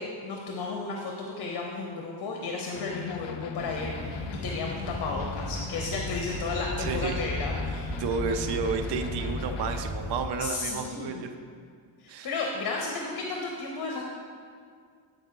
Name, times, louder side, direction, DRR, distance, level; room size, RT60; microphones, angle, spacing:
voice 1, 0.0-8.0 10.4-11.2 12.0-14.0, left 3 dB, 55° left, 0 dB, 0.8 m, -33 dB
sound 1, 2.7-9.8, left 8 dB, 90° left, 0.5 m, -40 dB
sound 2, 3.6-10.2, left 1 dB, 15° right, 1.4 m, -35 dB
voice 2, 6.8-7.1 8.0-11.3 12.1-12.3, right 5 dB, 60° right, 6 dB, 0.5 m, -31 dB
7.9 x 4.9 x 3.7 m, 2.1 s
cardioid pair, 150°, 47 cm